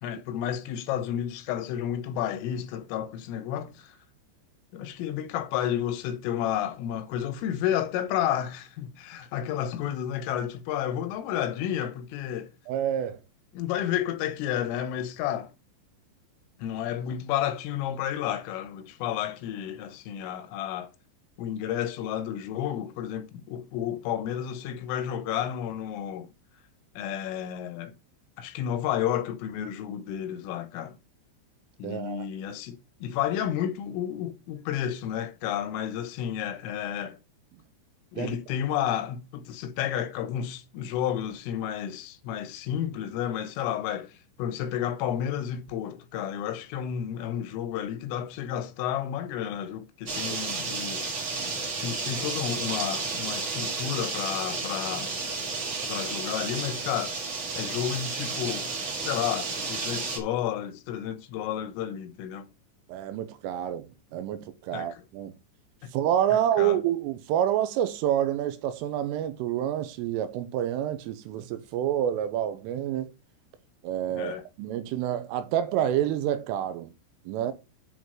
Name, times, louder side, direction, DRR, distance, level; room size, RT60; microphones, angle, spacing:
voice 1, 0.0-4.0 4.7-12.5 13.5-15.5 16.6-20.9 21.4-26.3 27.0-27.9 28.4-31.0 31.8-37.2 38.1-51.1 51.8-55.1 55.9-57.2 57.5-58.7 59.0-62.5 64.7-65.0 65.8-65.9 66.6-66.8 74.2-74.4, left 10 dB, 85° left, 3.5 m, -31 dB
voice 2, 12.7-13.2 31.8-32.3 38.2-38.4 50.1-50.4 51.3-51.6 62.9-65.4 65.9-73.1 73.8-76.9 77.3-77.5, right 11 dB, 90° right, 3.4 m, -28 dB
sound 1, 50.1-60.2, right 4 dB, 60° right, 1.3 m, -32 dB
9.6 x 4.0 x 6.3 m
omnidirectional pair, 5.7 m